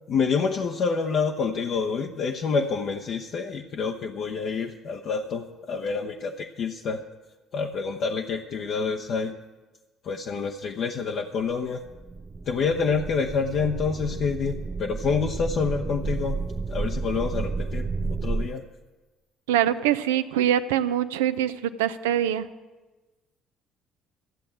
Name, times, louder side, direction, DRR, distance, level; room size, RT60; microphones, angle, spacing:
voice 1, 0.1-7.0 7.5-9.4 10.0-11.8 12.5-16.4 16.7-18.6, left 5 dB, 60° left, 2 dB, 0.8 m, -27 dB
sound 1, 11.9-18.5, right 4 dB, 30° right, 0.7 m, -31 dB
voice 2, 19.5-22.5, right 11 dB, 85° right, 12 dB, 0.5 m, -24 dB
14.0 x 7.7 x 8.5 m, 1.2 s
hypercardioid pair, 55°, 0 cm